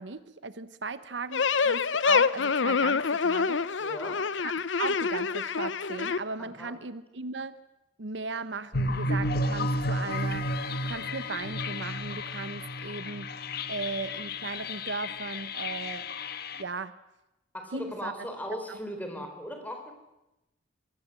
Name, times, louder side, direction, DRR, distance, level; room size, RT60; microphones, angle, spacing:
voice 1, 0.0-3.9 4.4-4.5 4.8-7.5 8.0-10.5 10.8-13.3 13.7-16.1 16.6-16.9 17.7-18.1 18.7-18.8, right 4 dB, 70° right, 14 dB, 1.0 m, -37 dB
sound 1, 1.3-6.2, left 5 dB, 80° left, 0.7 m, -26 dB
voice 2, 3.8-4.2 6.4-6.8 17.5-19.9, equal, 10° left, 5 dB, 3.8 m, -38 dB
sound 2, 8.7-16.6, left 1 dB, 55° left, 1.3 m, -32 dB
24.5 x 18.5 x 7.6 m, 0.96 s
head